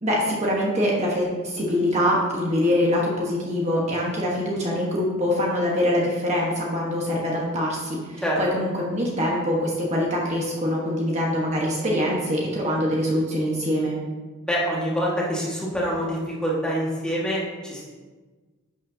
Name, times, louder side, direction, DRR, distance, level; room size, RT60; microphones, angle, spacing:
voice 1, 0.0-14.0, left 1 dB, 30° right, -3 dB, 1.3 m, -24 dB
voice 2, 14.4-17.8, equal, 5° left, -6 dB, 1.8 m, -26 dB
11.0 x 7.0 x 2.8 m, 1.3 s
head